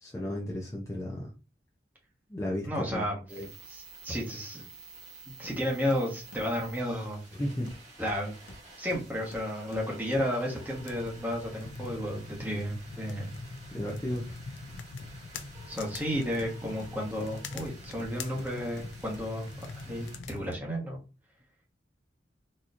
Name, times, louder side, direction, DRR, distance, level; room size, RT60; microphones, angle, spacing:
voice 1, 0.0-1.3 2.3-3.5 7.4-7.7 13.7-14.3, left 1 dB, 15° left, -3 dB, 0.6 m, -34 dB
voice 2, 2.6-3.2 3.7-4.6 5.4-7.2 8.0-8.3 8.8-13.3 15.7-21.0, equal, 10° right, -2 dB, 1.2 m, -32 dB
sound 1, 3.3-20.2, right 3 dB, 40° right, 1.8 m, -51 dB
Hammer, 5.4-5.6 5.9-6.6 7.7-10.6 14.4-15.8 16.4-19.5 20.0-20.1, left 1 dB, 70° left, 0.9 m, -51 dB
sound 2, 10.7-20.6, left 4 dB, 85° left, 0.5 m, -43 dB
4.2 x 3.0 x 2.5 m, 0.32 s
head